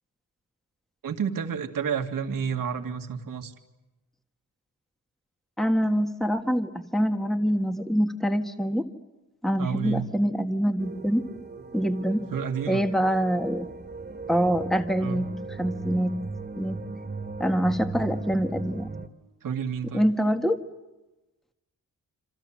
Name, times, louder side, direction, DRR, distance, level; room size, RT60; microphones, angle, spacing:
voice 1, 1.0-3.5 9.6-10.1 12.3-12.8 15.0-15.3 19.4-20.1, right 7 dB, 80° right, 5 dB, 2.2 m, -30 dB
voice 2, 5.6-8.8 9.4-11.2 11.7-12.3 12.7-13.7 14.3-15.3 15.6-16.1 16.6-16.8 17.4-18.9 19.9-20.6, equal, ahead, 6 dB, 1.6 m, -25 dB
sound 1, 10.8-19.1, right 3 dB, 30° right, 2.1 m, -37 dB
27.5 x 27.0 x 7.6 m, 1.1 s
cardioid pair, 95°, 33 cm